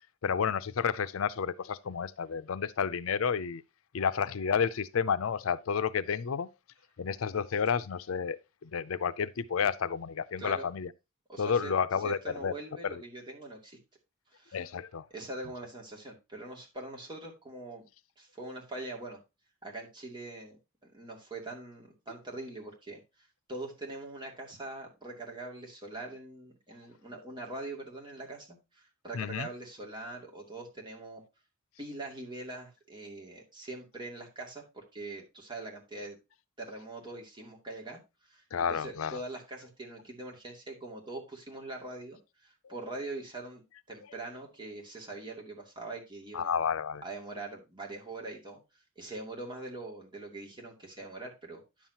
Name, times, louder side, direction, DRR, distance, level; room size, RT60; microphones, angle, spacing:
voice 1, 0.2-3.6 3.9-6.5 7.0-10.9 11.4-12.5 12.8-13.0 14.5-15.0 29.1-29.5 38.5-39.2 42.6-42.7 46.3-47.0, left 6 dB, 80° left, 0.5 m, -31 dB
voice 2, 10.4-10.7 11.3-11.7 12.0-13.8 14.3-14.6 15.1-17.8 18.2-19.2 19.6-31.2 31.8-36.2 36.6-38.4 38.7-43.6 43.9-46.5 47.0-48.6 49.0-51.9, right 2 dB, 25° right, 2.5 m, -43 dB
10.0 x 7.3 x 2.9 m
head